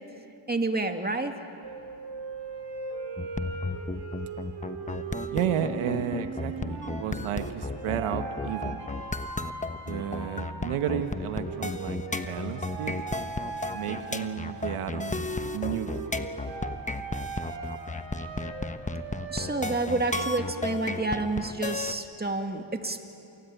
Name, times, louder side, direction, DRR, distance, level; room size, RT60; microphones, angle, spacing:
voice 1, 0.5-1.4 19.3-23.0, right 2 dB, 20° right, 5 dB, 2.3 m, -29 dB
sound 1, 1.6-21.1, right 4 dB, 60° right, 4.7 m, -40 dB
sound 2, 3.2-21.9, left 3 dB, 15° left, 1.1 m, -33 dB
voice 2, 5.3-8.9 9.9-12.9 13.7-16.1, right 9 dB, 80° right, 8 dB, 1.3 m, -32 dB
27.0 x 19.5 x 9.1 m, 2.8 s
cardioid pair, 70°, 49 cm